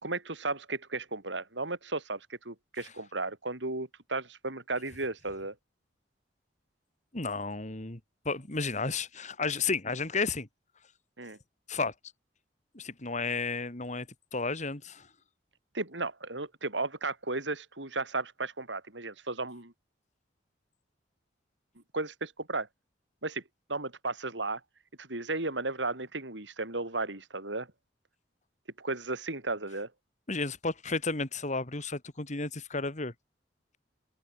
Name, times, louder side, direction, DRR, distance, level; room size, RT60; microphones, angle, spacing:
voice 1, 0.0-5.6 11.2-11.4 15.7-19.7 21.9-22.7 23.2-23.4 23.7-24.6 25.0-27.7 28.8-29.9, right 3 dB, 85° right, 5.0 m, -34 dB
voice 2, 7.1-8.0 8.2-10.5 11.7-11.9 12.7-14.1 14.3-15.1 30.3-33.1, left 4 dB, 40° left, 2.5 m, -32 dB
head